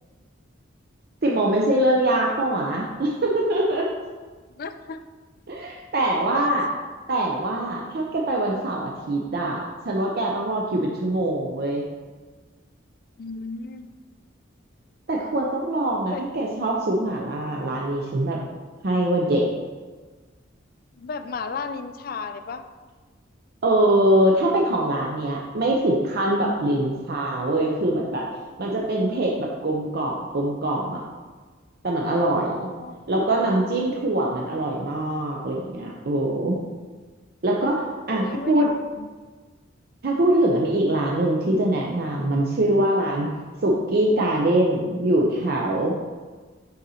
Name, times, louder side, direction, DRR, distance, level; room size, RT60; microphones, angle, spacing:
voice 1, 1.2-3.9 5.5-6.7 7.1-11.8 15.1-18.4 18.8-19.5 23.6-28.2 28.6-31.0 31.8-32.7 33.1-36.6 37.4-38.7 40.0-43.3 43.6-46.0, right 1 dB, 50° right, -1 dB, 0.6 m, -23 dB
voice 2, 4.6-5.0 6.4-6.5 13.2-13.9 16.1-16.2 20.9-22.6 32.8-33.0 38.1-39.1, left 4 dB, 45° left, 9 dB, 0.4 m, -34 dB
6.5 x 4.1 x 4.2 m, 1.4 s
head